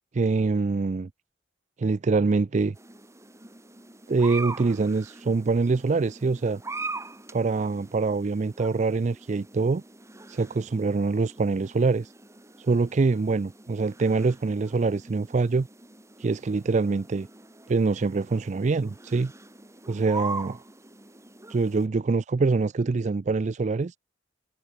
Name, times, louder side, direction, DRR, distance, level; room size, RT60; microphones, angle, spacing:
voice 1, 0.1-1.1 1.8-2.8 4.1-6.6 7.3-9.8 10.3-12.1 12.6-15.7 16.2-17.3 17.7-19.3 19.9-20.6 21.5-24.0, right 4 dB, 40° right, 0.4 m, -24 dB
sound 1, 2.7-21.9, right 3 dB, 15° right, 2.6 m, -42 dB
head